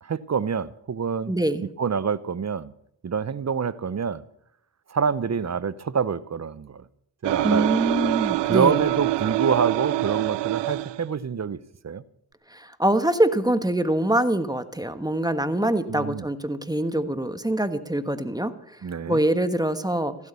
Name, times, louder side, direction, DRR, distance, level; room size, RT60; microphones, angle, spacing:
voice 1, 0.0-1.3 1.8-2.7 3.0-4.2 4.9-6.8 7.2-7.7 8.4-11.6 11.8-12.0 15.9-16.3 18.8-19.2, right 6 dB, 35° right, 0.8 m, -26 dB
voice 2, 1.3-1.6 7.4-8.8 12.5-18.8 19.1-20.3, right 1 dB, 10° right, 1.4 m, -24 dB
sound 1, 7.2-11.0, right 17 dB, 70° right, 0.5 m, -25 dB
15.5 x 9.6 x 7.0 m
supercardioid pair, 40°, 44 cm